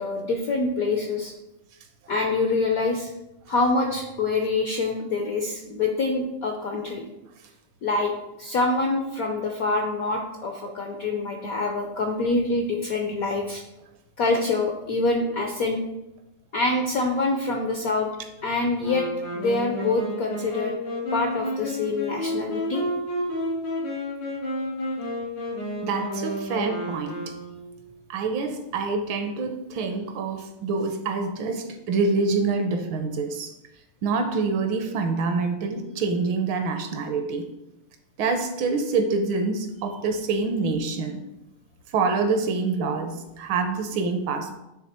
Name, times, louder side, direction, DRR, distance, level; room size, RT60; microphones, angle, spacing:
voice 1, 0.0-1.3 2.1-3.1 3.5-7.1 7.8-8.1 8.4-13.6 14.2-15.8 16.5-18.1 18.4-19.1 19.4-20.7 21.1-22.8, left 3 dB, 70° left, 2 dB, 0.8 m, -25 dB
Wind instrument woodwind instrument, 18.8-27.8, equal, 85° left, 3.6 m, -31 dB
voice 2, 25.8-27.2 28.1-33.5 34.0-37.4 38.2-41.2 41.9-44.5, right 4 dB, 70° right, 6 dB, 1.4 m, -26 dB
9.4 x 3.3 x 4.3 m, 0.93 s
omnidirectional pair, 2.3 m